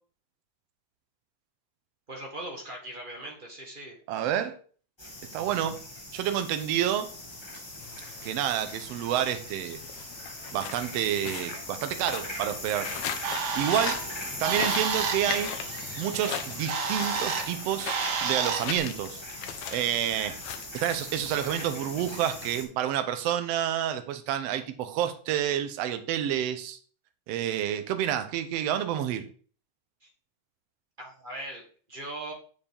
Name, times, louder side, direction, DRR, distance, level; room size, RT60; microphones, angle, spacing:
voice 1, 2.1-4.0 30.0-30.1 31.0-31.6 31.9-32.3, right 1 dB, 30° right, 1.0 m, -39 dB
voice 2, 4.1-4.6 5.3-5.8 6.1-7.1 8.2-9.8 10.5-12.9 13.5-14.0 14.4-19.2 19.7-20.4 20.7-26.8 27.3-29.3, right 10 dB, 70° right, 1.7 m, -29 dB
sound 1, 5.0-22.6, left 1 dB, 10° left, 1.7 m, -40 dB
sound 2, 7.1-22.8, left 8 dB, 70° left, 1.6 m, -40 dB
Bird, 12.9-18.8, right 5 dB, 85° right, 0.9 m, -32 dB
7.1 x 7.1 x 3.5 m
omnidirectional pair, 3.3 m